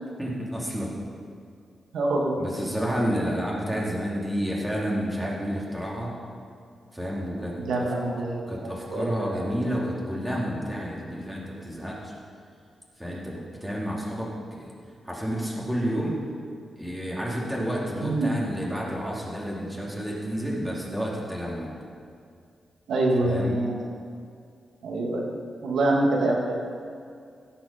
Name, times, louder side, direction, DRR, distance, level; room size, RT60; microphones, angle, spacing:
voice 1, 0.2-0.9 2.4-6.1 6.9-7.9 8.5-12.1 13.0-14.7 15.0-16.2 16.8-21.7 23.2-23.6, equal, 5° right, -5 dB, 2.7 m, -30 dB
voice 2, 1.9-2.4 7.6-8.6 8.9-9.4 18.0-18.4 22.9-23.9 24.8-26.5, right 2 dB, 90° right, -1 dB, 1.6 m, -25 dB
17.0 x 6.0 x 5.5 m, 2.3 s
cardioid pair, 85°, 0 cm